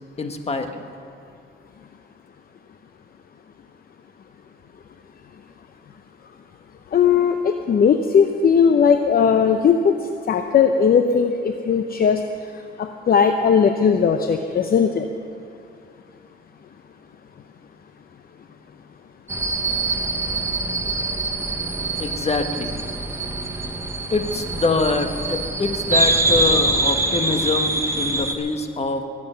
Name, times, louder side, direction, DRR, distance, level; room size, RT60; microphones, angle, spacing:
voice 1, 0.2-0.8 22.0-22.7 24.1-29.0, left 3 dB, 30° left, 6 dB, 1.4 m, -24 dB
voice 2, 6.9-10.0 10.3-12.2 12.8-15.1, left 6 dB, 50° left, 7 dB, 0.8 m, -18 dB
sound 1, 19.3-28.3, right 2 dB, 15° right, 1.3 m, -24 dB
22.5 x 9.6 x 5.8 m, 2.5 s
cardioid pair, 90°, 20 cm